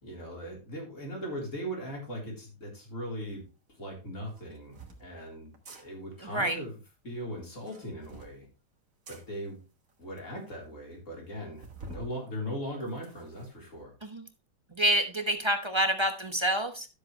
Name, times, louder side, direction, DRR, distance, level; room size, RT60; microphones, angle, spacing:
voice 1, 0.0-3.4 3.8-6.8 7.0-8.5 9.1-9.6 10.0-13.9, equal, 45° left, -1 dB, 4.3 m, -39 dB
sound 1, 3.3-3.4 4.3-5.0 5.5-5.8 7.5-8.4 9.1-9.2 9.9-10.0 10.2-10.3 10.6-10.7 11.6-12.1 12.5-13.5, right 2 dB, 50° right, 2.0 m, -47 dB
voice 2, 6.2-6.6 14.0-14.2 14.7-16.9, right 1 dB, 20° right, 6 dB, 0.9 m, -27 dB
13.0 x 7.6 x 3.2 m, 0.30 s
omnidirectional pair, 1.9 m